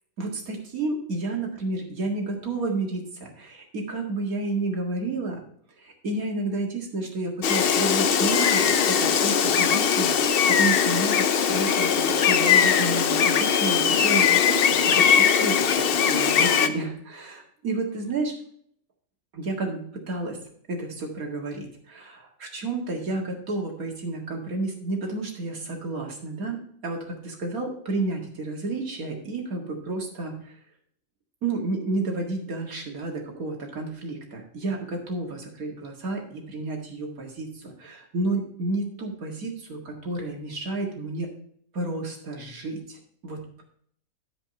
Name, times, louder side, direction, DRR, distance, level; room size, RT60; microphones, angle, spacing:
voice 1, 0.2-5.4 5.8-18.4 19.3-20.4 20.7-30.6 31.4-41.3 41.7-43.6, right 2 dB, 80° right, 0 dB, 2.3 m, -31 dB
Gull seagull, 7.4-16.7, left 7 dB, 55° left, 0.7 m, -20 dB
12.5 x 5.1 x 4.2 m, 0.63 s
omnidirectional pair, 1.5 m